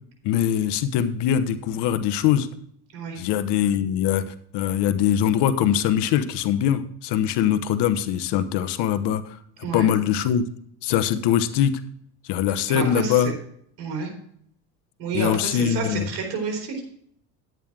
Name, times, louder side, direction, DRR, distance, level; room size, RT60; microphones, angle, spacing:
voice 1, 0.2-2.5 3.2-9.2 9.7-10.4 10.8-11.8 12.2-13.3 15.1-16.1, left 10 dB, 55° left, 12 dB, 1.1 m, -22 dB
voice 2, 12.7-13.3 13.8-14.1 15.0-16.8, right 5 dB, 60° right, 0 dB, 4.3 m, -29 dB
10.5 x 9.2 x 3.7 m, 0.65 s
supercardioid pair, 100°, 50 cm